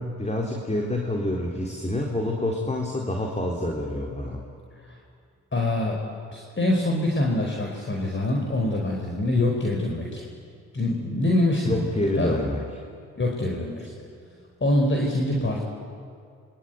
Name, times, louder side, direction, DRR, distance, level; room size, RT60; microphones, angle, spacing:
voice 1, 0.0-4.4 11.6-12.6, left 1 dB, 20° left, 0 dB, 4.2 m, -27 dB
voice 2, 5.5-6.0 6.3-10.2 10.7-11.9 12.1-12.4 13.2-13.9 14.6-15.6, left 1 dB, 35° left, 0 dB, 4.9 m, -24 dB
26.0 x 24.0 x 9.5 m, 2.3 s
supercardioid pair, 55°, 33 cm